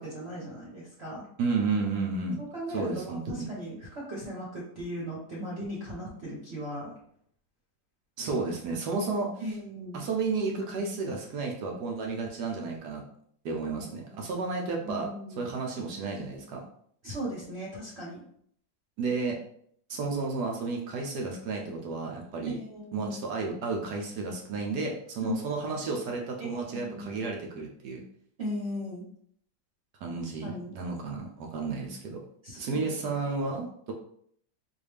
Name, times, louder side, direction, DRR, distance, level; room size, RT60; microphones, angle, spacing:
voice 1, 0.0-1.2 2.4-6.9 9.4-10.0 13.8-14.3 14.8-15.5 17.0-18.2 22.5-23.2 25.2-25.3 26.4-27.2 28.4-29.0 30.2-30.7 32.4-33.1, equal, 45° right, -5 dB, 1.0 m, -38 dB
voice 2, 1.4-2.4 2.7-3.5 8.2-9.3 9.9-13.0 13.4-15.1 15.4-16.6 19.0-19.4 19.9-22.6 22.9-28.0 30.0-32.2 32.6-33.9, right 4 dB, 70° right, 1 dB, 1.1 m, -32 dB
3.9 x 2.6 x 3.3 m, 0.64 s
omnidirectional pair, 2.0 m